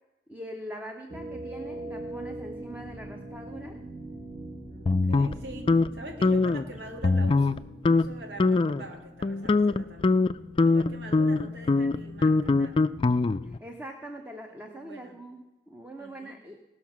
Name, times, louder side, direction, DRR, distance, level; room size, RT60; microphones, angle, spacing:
voice 1, 0.3-3.8 13.4-16.6, right 1 dB, 10° right, 3 dB, 0.8 m, -42 dB
sound 1, 1.1-9.8, right 1 dB, 25° right, 1.6 m, -42 dB
voice 2, 4.7-7.6 7.9-10.2 10.6-12.9 14.6-15.2 16.0-16.4, right 2 dB, 70° right, 2 dB, 1.8 m, -44 dB
sound 2, 4.9-5.9 6.2-6.6 7.0-7.6 7.9-8.1 8.4-8.8 9.2-13.6, left 3 dB, 30° left, 0.3 m, -23 dB
18.0 x 6.4 x 6.0 m, 1.1 s
head